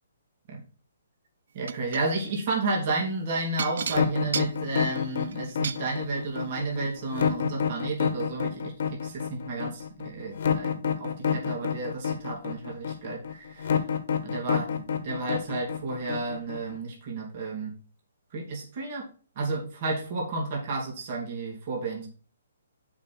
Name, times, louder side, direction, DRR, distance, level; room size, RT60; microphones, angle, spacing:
voice 1, 1.5-8.7 9.0-13.8 14.2-17.7 18.3-19.1 19.4-22.1, right 3 dB, 40° right, -2 dB, 2.7 m, -32 dB
sound 1, 1.7-2.1 3.6-5.8 6.8-6.9 7.4-7.5, right 7 dB, 65° right, 0.6 m, -34 dB
sound 2, 3.9-16.8, left 7 dB, 60° left, 1.3 m, -28 dB
7.2 x 5.3 x 5.8 m, 0.38 s
hypercardioid pair, 160°, 0 cm